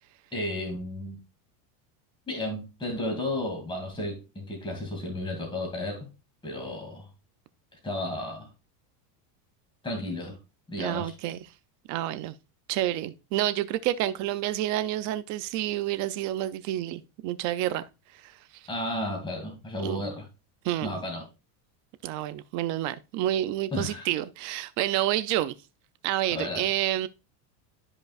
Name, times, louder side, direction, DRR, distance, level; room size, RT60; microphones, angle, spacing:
voice 1, 0.3-1.2 2.3-6.1 6.4-7.1 7.8-8.5 9.8-10.4 10.7-11.1 18.7-20.3 20.8-21.3 23.7-24.1 26.3-26.7, left 1 dB, 10° left, 2.3 m, -33 dB
voice 2, 10.8-11.4 11.9-12.3 12.7-17.8 18.1-18.4 19.8-20.0 20.6-20.9 22.0-25.5 26.0-27.1, right 13 dB, 40° right, 0.4 m, -29 dB
12.5 x 5.2 x 2.4 m
supercardioid pair, 155°, 49 cm